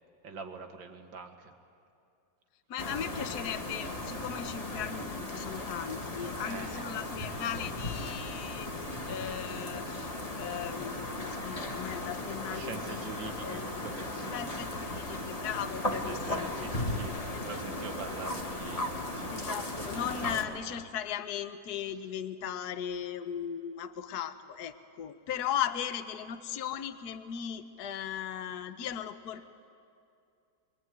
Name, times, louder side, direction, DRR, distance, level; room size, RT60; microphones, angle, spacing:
voice 1, 0.2-1.5 6.4-7.0 12.5-14.6 15.9-20.8, right 5 dB, 75° right, 5 dB, 2.5 m, -44 dB
voice 2, 2.7-8.7 9.1-10.1 10.4-13.7 14.3-16.8 17.5-17.6 19.3-29.5, left 9 dB, 60° left, 9 dB, 1.4 m, -37 dB
sound 1, 2.8-20.5, left 2 dB, 20° left, 1.5 m, -36 dB
25.5 x 23.5 x 9.4 m, 2.5 s
omnidirectional pair, 2.1 m